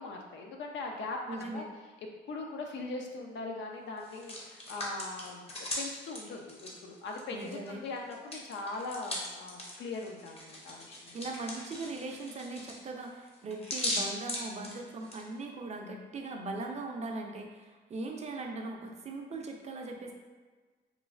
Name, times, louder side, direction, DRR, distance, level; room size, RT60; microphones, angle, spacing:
voice 1, 0.0-1.7 2.3-5.5 5.8-11.2, left 3 dB, 70° left, 1 dB, 0.5 m, -40 dB
voice 2, 1.3-1.7 7.3-7.8 11.1-20.1, right 3 dB, 35° right, 2 dB, 0.4 m, -39 dB
Hands, 4.0-7.7 8.0-15.2, left 1 dB, 30° left, 0.7 m, -39 dB
3.0 x 2.4 x 2.4 m, 1.3 s
cardioid pair, 90°, 20 cm